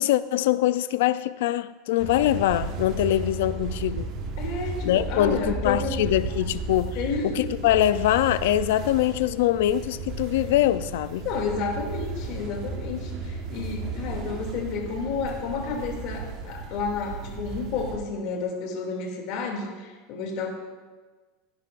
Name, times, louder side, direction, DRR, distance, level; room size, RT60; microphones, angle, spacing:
voice 1, 0.0-4.1 4.8-7.0 7.2-11.3, left 13 dB, 75° left, 0.4 m, -23 dB
sound 1, 2.0-18.0, right 4 dB, 45° right, 1.3 m, -34 dB
voice 2, 4.4-6.0 6.9-7.5 11.2-20.5, left 5 dB, 50° left, 2.5 m, -31 dB
16.5 x 10.5 x 2.5 m
supercardioid pair, 150°, 0 cm